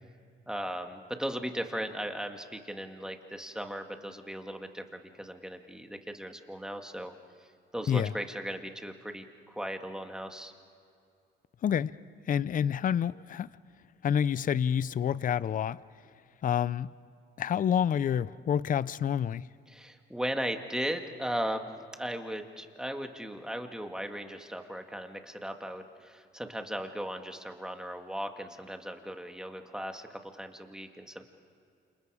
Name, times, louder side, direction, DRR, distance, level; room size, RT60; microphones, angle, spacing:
voice 1, 0.5-7.1 7.4-10.5 19.7-31.3, equal, 5° right, 5 dB, 2.0 m, -37 dB
voice 2, 12.3-13.5 14.0-15.8 16.4-16.9 17.4-19.5, left 8 dB, 45° left, 19 dB, 0.5 m, -28 dB
29.5 x 28.0 x 5.0 m, 2.4 s
cardioid pair, 90°, 20 cm